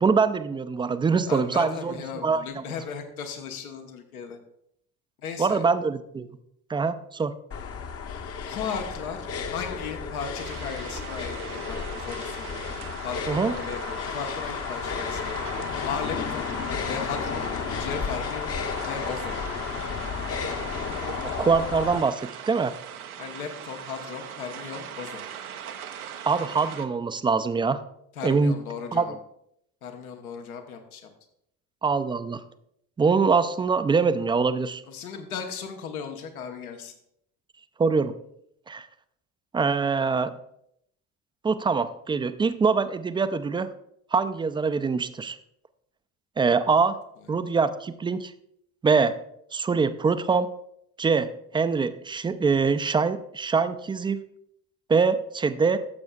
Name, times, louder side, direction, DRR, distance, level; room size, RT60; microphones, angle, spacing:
voice 1, 0.0-2.6 5.4-6.4 6.7-7.3 13.3-13.5 21.1-22.7 26.2-27.8 28.2-28.6 28.9-29.1 31.8-32.4 33.0-34.8 37.8-38.1 38.7-38.9 39.5-40.3 41.4-43.7 44.1-45.4 46.4-47.0 47.3-48.3 48.8-49.1 49.5-50.5 51.0-54.2 54.9-55.8, right 5 dB, 10° right, 11 dB, 0.4 m, -24 dB
voice 2, 1.3-4.4 5.2-5.7 8.5-12.5 13.0-15.5 15.8-16.5 16.9-17.4 17.8-18.5 18.8-19.4 23.2-25.2 28.2-29.2 29.8-31.1 34.9-37.0, left 6 dB, 80° left, 4 dB, 1.1 m, -36 dB
sound 1, 7.5-22.0, left 6 dB, 35° left, 0.8 m, -32 dB
sound 2, 10.4-26.9, right 9 dB, 80° right, 0.7 m, -41 dB
14.5 x 7.0 x 2.4 m, 0.74 s
figure-of-eight pair, 55°, 43 cm